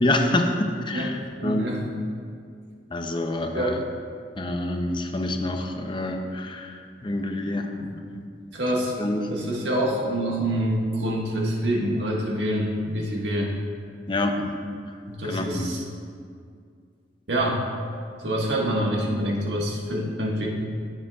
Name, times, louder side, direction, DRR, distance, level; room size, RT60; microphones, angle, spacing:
voice 1, 0.0-1.2 1.4-1.7 2.9-3.8 4.4-7.7 8.1-8.2 9.0-9.3 14.1-14.5 15.2-15.7, left 1 dB, 25° left, 4 dB, 0.6 m, -26 dB
voice 2, 1.4-1.9 3.5-3.7 7.8-7.9 8.5-8.9 9.3-13.5 15.1-15.8 17.3-17.6 18.2-20.5, right 1 dB, 85° right, -2 dB, 1.6 m, -26 dB
15.0 x 7.4 x 2.4 m, 2.2 s
head